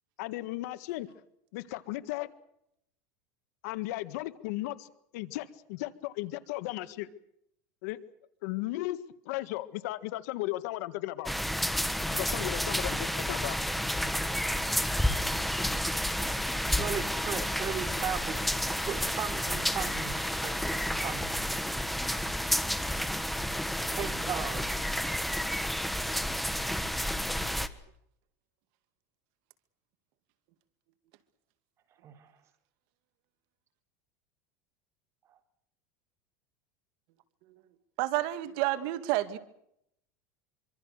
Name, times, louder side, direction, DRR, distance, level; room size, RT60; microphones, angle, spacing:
voice 1, 0.2-1.1 1.5-2.3 3.6-7.1 7.8-8.0 8.4-9.0 9.3-11.3 12.1-13.6, left 17 dB, 70° left, 1.8 m, -35 dB
sound 1, 11.3-27.7, equal, ahead, 1.4 m, -30 dB
voice 2, 16.7-21.7 23.9-24.9 32.0-32.4 35.3-35.4, right 8 dB, 30° right, 3.7 m, -38 dB
voice 3, 38.0-39.4, right 16 dB, 60° right, 2.1 m, -30 dB
25.5 x 25.0 x 6.7 m
supercardioid pair, 140°, 9 cm